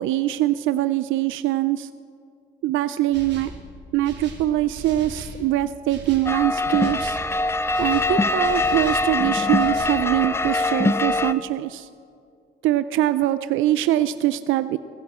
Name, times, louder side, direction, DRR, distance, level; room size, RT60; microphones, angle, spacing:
voice 1, 0.0-1.9 2.6-3.5 3.9-7.2 7.8-11.9 12.6-14.8, right 14 dB, 85° right, 13 dB, 0.4 m, -23 dB
sound 1, 3.1-3.6 4.0-5.4 5.9-6.3 6.8-7.3 7.7-9.1 9.6-10.0, right 3 dB, 60° right, 2.8 m, -38 dB
sound 2, 6.3-11.3, left 2 dB, 10° left, 0.5 m, -23 dB
15.5 x 15.5 x 4.3 m, 2.4 s
cardioid pair, 90°, 20 cm